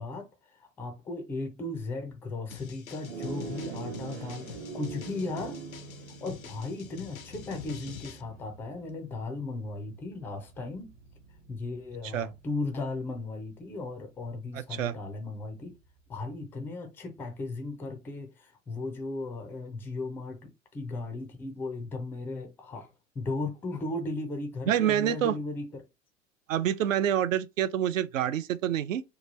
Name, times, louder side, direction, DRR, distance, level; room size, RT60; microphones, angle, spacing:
voice 1, 0.0-5.6 6.2-10.9 11.5-15.7 16.1-22.9 23.1-25.9, left 2 dB, 5° left, 0.3 m, -36 dB
sound 1, 2.5-8.2, left 8 dB, 90° left, 0.6 m, -47 dB
sound 2, 3.0-12.6, right 4 dB, 55° right, 1.0 m, -44 dB
voice 2, 14.5-14.9 24.7-25.4 26.5-29.0, right 10 dB, 70° right, 0.5 m, -27 dB
3.0 x 2.3 x 3.8 m
figure-of-eight pair, 90°, 40 cm